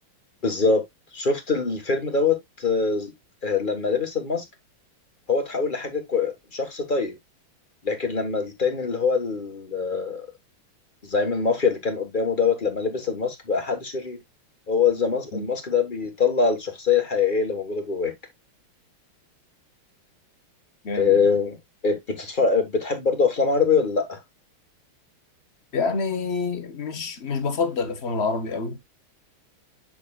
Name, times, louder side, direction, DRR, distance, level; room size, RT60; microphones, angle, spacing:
voice 1, 0.4-0.8 1.1-3.1 3.4-4.4 5.3-7.1 7.8-10.3 11.0-14.2 14.7-18.1 20.9-21.6 21.8-24.2, left 5 dB, 25° left, 1.4 m, -23 dB
voice 2, 20.8-21.3 25.7-28.8, left 4 dB, 40° left, 1.0 m, -27 dB
7.8 x 6.7 x 2.4 m
omnidirectional pair, 2.3 m